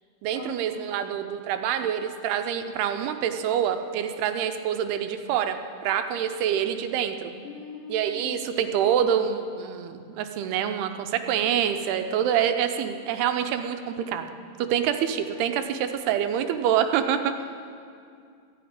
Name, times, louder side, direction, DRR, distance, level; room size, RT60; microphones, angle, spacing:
voice 1, 0.2-7.3 7.9-14.3 14.6-17.4, right 9 dB, 85° right, 8 dB, 2.7 m, -26 dB
voice 2, 7.4-8.4, left 6 dB, 85° left, -4 dB, 4.6 m, -40 dB
13.0 x 9.3 x 9.5 m, 2.3 s
omnidirectional pair, 4.6 m